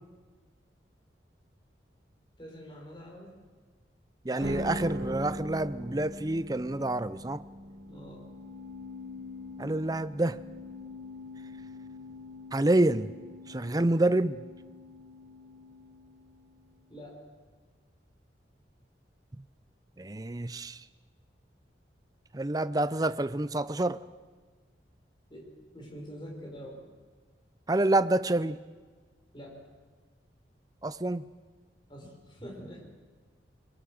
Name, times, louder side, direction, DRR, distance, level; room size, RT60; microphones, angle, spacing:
voice 1, 2.4-3.3 4.3-4.9 7.9-8.2 16.9-17.2 25.3-26.9 29.3-29.6 31.9-32.8, equal, 25° left, 5.4 m, -45 dB
voice 2, 4.2-7.4 9.6-10.4 12.5-13.1 13.5-14.4 19.4-19.5 20.0-20.9 22.3-24.0 27.7-28.6 30.8-31.3, right 2 dB, 20° right, 0.5 m, -28 dB
sound 1, 4.4-16.7, left 1 dB, 70° right, 1.7 m, -42 dB
22.5 x 22.5 x 6.4 m
head